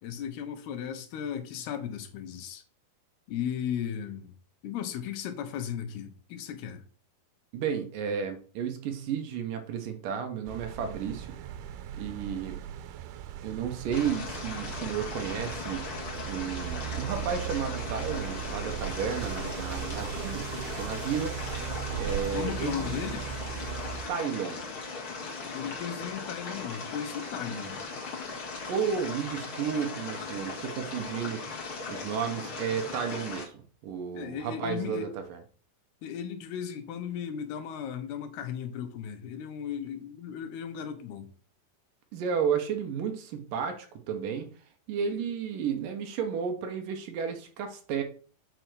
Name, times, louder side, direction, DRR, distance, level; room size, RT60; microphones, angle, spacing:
voice 1, 0.0-2.6 3.3-4.3 4.6-6.8 22.3-23.3 25.4-27.8 34.1-35.1 36.0-41.3, left 8 dB, 80° left, 3.1 m, -36 dB
voice 2, 7.5-11.4 11.9-12.6 13.4-15.8 16.2-21.3 22.0-23.2 24.1-24.6 27.5-27.7 28.7-31.4 31.9-35.4 42.1-44.5 44.9-48.0, right 7 dB, 70° right, 2.4 m, -33 dB
sound 1, 10.5-24.1, right 10 dB, 90° right, 2.8 m, -38 dB
sound 2, 13.9-33.5, left 4 dB, 40° left, 2.2 m, -38 dB
6.9 x 5.7 x 6.2 m
omnidirectional pair, 4.5 m